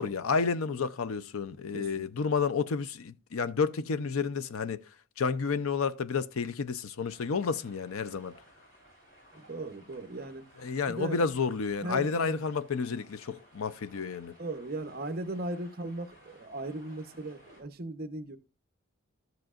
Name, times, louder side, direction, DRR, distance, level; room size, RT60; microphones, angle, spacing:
voice 1, 0.0-4.8 5.2-8.3 10.6-14.3, left 5 dB, 75° left, 0.5 m, -30 dB
voice 2, 1.7-2.1 9.3-10.5 10.9-11.2 11.8-12.4 14.4-18.4, right 2 dB, 45° right, 0.8 m, -38 dB
sound 1, 7.1-17.6, equal, 35° left, 6.1 m, -58 dB
13.0 x 7.7 x 2.4 m
head